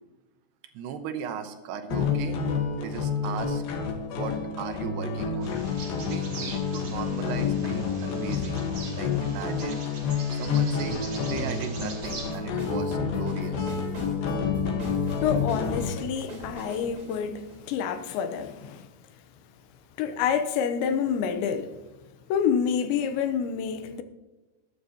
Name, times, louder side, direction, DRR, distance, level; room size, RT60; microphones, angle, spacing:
voice 1, 0.7-2.4 2.8-3.6 4.1-5.5 6.0-8.6 9.0-9.8 10.3-13.7, right 7 dB, 75° right, 2.8 m, -37 dB
sound 1, 1.9-16.0, left 6 dB, 65° left, 2.9 m, -29 dB
Bird vocalization bird call bird song, 5.4-12.4, right 3 dB, 40° right, 2.7 m, -42 dB
sound 2, 12.0-18.3, equal, 20° right, 3.7 m, -40 dB
voice 2, 15.2-18.9 20.0-21.7 22.3-24.0, left 7 dB, 85° left, 3.2 m, -28 dB
20.5 x 9.5 x 2.9 m
omnidirectional pair, 5.1 m